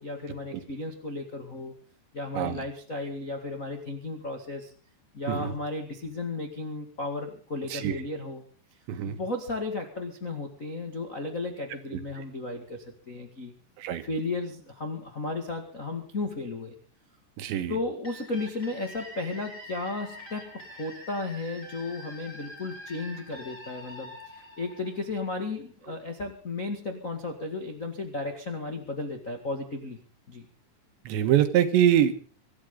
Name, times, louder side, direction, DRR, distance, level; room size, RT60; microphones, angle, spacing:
voice 1, 0.0-1.7 2.1-4.7 5.1-8.4 9.1-13.5 14.0-16.7 17.7-30.4, left 2 dB, 85° left, 3 dB, 0.7 m, -34 dB
voice 2, 8.9-9.2 11.9-12.0 13.8-14.0 17.4-17.8 31.1-32.2, right 10 dB, 80° right, 9 dB, 3.6 m, -24 dB
sound 1, 18.0-25.6, left 1 dB, 15° left, 7.5 m, -45 dB
25.0 x 13.5 x 3.8 m, 0.41 s
omnidirectional pair, 5.1 m